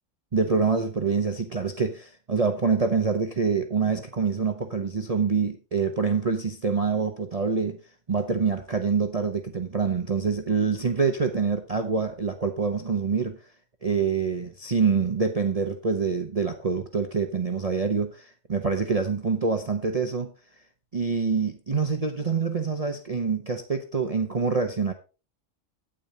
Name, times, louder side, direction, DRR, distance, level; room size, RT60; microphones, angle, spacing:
voice 1, 0.3-7.8 8.1-13.4 13.8-20.3 20.9-24.9, right 5 dB, 35° right, 0.9 m, -26 dB
9.0 x 8.8 x 4.1 m
omnidirectional pair, 1.3 m